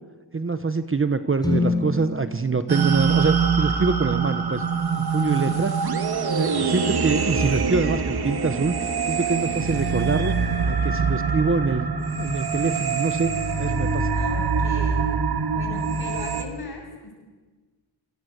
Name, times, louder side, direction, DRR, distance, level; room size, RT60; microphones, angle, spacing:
voice 1, 0.3-4.6 4.9-5.7 6.3-11.9 12.2-14.1, right 4 dB, 25° right, 10 dB, 1.0 m, -25 dB
sound 1, 1.4-5.5, left 3 dB, 10° left, 4.3 m, -30 dB
sound 2, 2.7-16.4, right 5 dB, 50° right, 2.0 m, -24 dB
voice 2, 14.1-15.0 15.5-17.2, left 3 dB, 50° left, 2 dB, 7.5 m, -38 dB
27.0 x 25.5 x 8.1 m, 1.3 s
wide cardioid pair, 175°, 47 cm